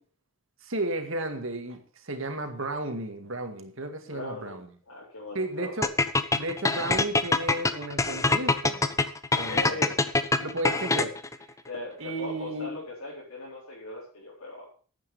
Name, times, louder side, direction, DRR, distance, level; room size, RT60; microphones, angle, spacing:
voice 1, 0.6-4.7 5.3-5.9 6.3-9.0 9.3-9.9 10.4-11.2 12.0-12.7, right 2 dB, 65° right, 6 dB, 2.1 m, -33 dB
voice 2, 4.1-4.6 4.9-5.7 9.3-9.9 11.6-14.7, left 2 dB, 80° left, -6 dB, 4.5 m, -39 dB
sound 1, 5.8-11.3, left 3 dB, 15° left, 0.6 m, -24 dB
9.9 x 8.9 x 7.0 m, 0.43 s
head